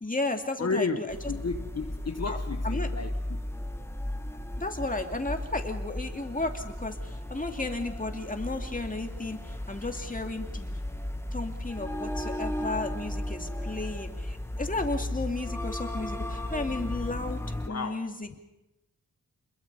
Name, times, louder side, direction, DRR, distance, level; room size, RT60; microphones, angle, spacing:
voice 1, 0.0-1.2 2.2-2.4 2.6-2.9 4.6-10.8 11.3-18.4, left 2 dB, 25° left, 4 dB, 2.4 m, -34 dB
voice 2, 0.6-3.1 17.7-18.0, left 4 dB, 45° left, 5 dB, 1.1 m, -32 dB
sound 1, 1.1-17.7, left 1 dB, 5° left, 1.6 m, -35 dB
28.0 x 22.0 x 5.5 m, 0.97 s
wide cardioid pair, 85°, 36 cm